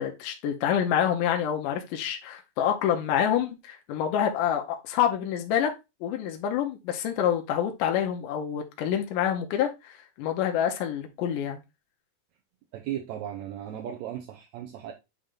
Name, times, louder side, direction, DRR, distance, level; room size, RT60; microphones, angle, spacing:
voice 1, 0.0-5.7 6.0-11.6, left 9 dB, 80° left, 2.3 m, -27 dB
voice 2, 12.7-14.9, right 10 dB, 75° right, 1.7 m, -36 dB
8.7 x 3.0 x 3.6 m
omnidirectional pair, 3.9 m